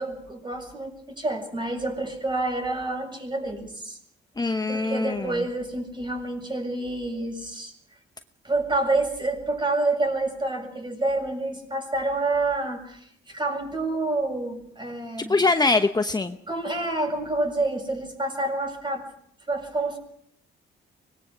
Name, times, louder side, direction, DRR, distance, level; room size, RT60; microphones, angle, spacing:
voice 1, 0.0-4.0 4.7-7.7 8.4-15.5 16.5-19.1 19.5-20.0, right 2 dB, 25° right, 4 dB, 7.4 m, -28 dB
voice 2, 4.4-5.3 15.3-16.4, left 3 dB, 20° left, 8 dB, 1.0 m, -23 dB
24.5 x 20.5 x 6.3 m, 0.70 s
cardioid pair, 90°, 20 cm